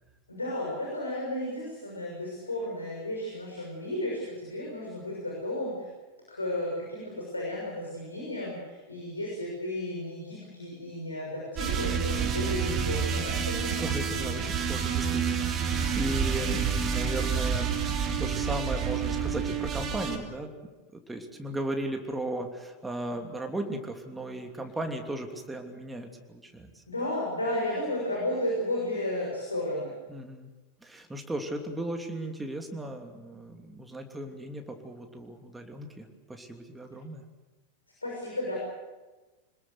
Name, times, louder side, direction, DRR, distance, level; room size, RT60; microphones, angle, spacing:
voice 1, 0.3-5.9 6.3-13.8 14.4-14.5 26.9-29.9 38.0-38.6, left 1 dB, 80° left, -2 dB, 6.4 m, -33 dB
sound 1, 11.6-20.2, right 6 dB, 30° right, 2.6 m, -29 dB
voice 2, 12.3-12.6 13.8-20.5 21.1-26.8 30.1-30.5 30.8-37.2, right 1 dB, 10° right, 4 dB, 2.9 m, -36 dB
26.5 x 20.5 x 8.0 m, 1.2 s
figure-of-eight pair, 90°, 0 cm